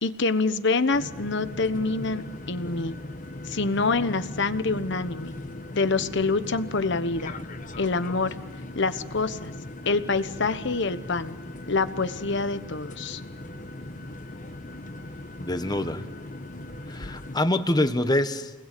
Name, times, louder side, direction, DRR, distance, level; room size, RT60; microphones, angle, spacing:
voice 1, 0.0-2.2 2.5-2.9 3.5-5.3 5.7-7.3 7.8-8.3 8.7-9.5 9.9-11.4 11.7-13.2, left 3 dB, 65° left, 12 dB, 1.2 m, -26 dB
sound 1, 0.9-17.4, left 1 dB, 45° left, 1.2 m, -39 dB
voice 2, 15.4-16.0 16.9-18.5, left 1 dB, 20° left, 9 dB, 1.3 m, -25 dB
29.0 x 21.0 x 8.5 m, 1.1 s
head